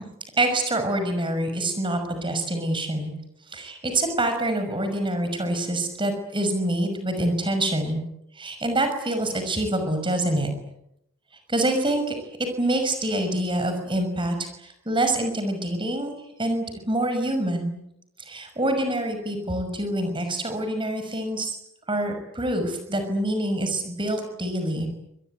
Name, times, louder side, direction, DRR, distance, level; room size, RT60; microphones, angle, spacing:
voice 1, 0.4-3.1 3.5-8.0 8.4-10.5 11.5-12.2 12.6-16.1 16.4-17.7 18.2-21.5 21.9-24.9, right 1 dB, 25° right, 7 dB, 6.0 m, -26 dB
27.5 x 22.5 x 9.1 m, 0.79 s
head